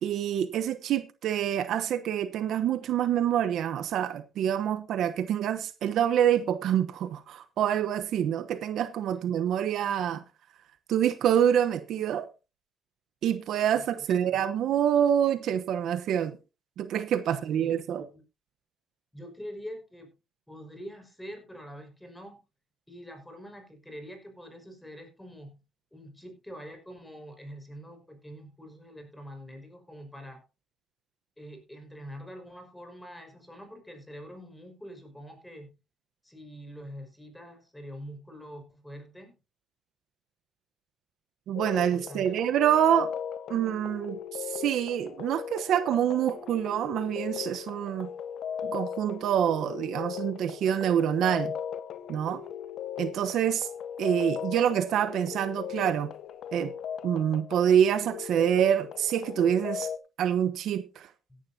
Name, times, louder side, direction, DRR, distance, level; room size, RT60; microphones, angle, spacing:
voice 1, 0.0-10.2 10.9-12.3 13.2-16.4 16.8-18.0 41.5-43.1 43.5-48.1 48.6-51.5 52.1-52.4 53.0-53.7 54.0-56.1 56.5-56.7 57.0-59.9 60.2-61.1, right 9 dB, 70° right, 1.0 m, -26 dB
voice 2, 13.7-14.4 17.3-18.2 19.1-20.1 20.5-22.4 22.9-25.6 25.9-30.4 31.4-35.7 36.2-39.4 41.9-42.4 61.3-61.4, equal, 10° left, 5.4 m, -45 dB
sound 1, 41.5-60.0, left 8 dB, 70° left, 0.7 m, -38 dB
16.5 x 11.0 x 2.8 m
cardioid pair, 80°, 0 cm